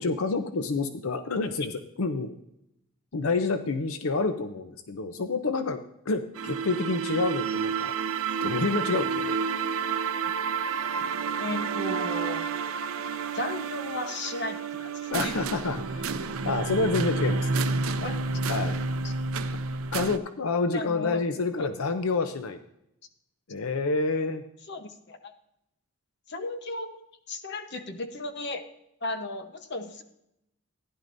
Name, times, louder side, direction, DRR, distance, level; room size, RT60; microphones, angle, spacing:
voice 1, 0.0-2.3 3.1-5.8 6.1-7.9 8.4-9.4 15.1-16.1 16.5-17.7 18.5-18.8 19.9-22.6 23.5-24.4, left 3 dB, 85° left, 8 dB, 0.7 m, -28 dB
sound 1, 6.3-20.2, right 5 dB, 90° right, 0.7 m, -30 dB
voice 2, 11.4-12.4 13.3-15.4 18.0-18.2 20.7-21.2 21.6-21.7 24.7-25.3 26.3-26.9 27.3-28.6 29.0-30.0, left 2 dB, 50° left, 7 dB, 1.0 m, -35 dB
15.0 x 10.5 x 2.6 m, 0.79 s
head